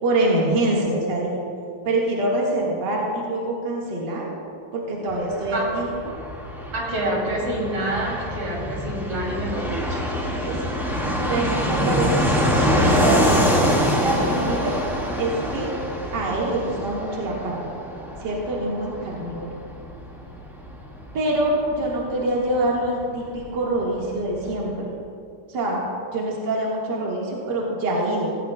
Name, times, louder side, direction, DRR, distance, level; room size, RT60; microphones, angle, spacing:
voice 1, 0.0-1.4 1.8-4.3 4.7-6.2 10.4-10.7 11.3-12.5 12.8-13.4 14.0-14.8 15.2-15.7 16.1-17.7 18.2-19.5 21.1-24.9 25.5-25.8 26.1-28.3, right 1 dB, 55° right, -4 dB, 2.3 m, -25 dB
Fixed-wing aircraft airplane, 5.1-23.5 23.7-23.8 24.0-24.7, equal, ahead, 1.5 m, -25 dB
voice 2, 6.7-10.0 11.6-12.0, right 1 dB, 85° right, -3 dB, 3.8 m, -27 dB
18.0 x 16.0 x 2.3 m, 2.4 s
omnidirectional pair, 2.4 m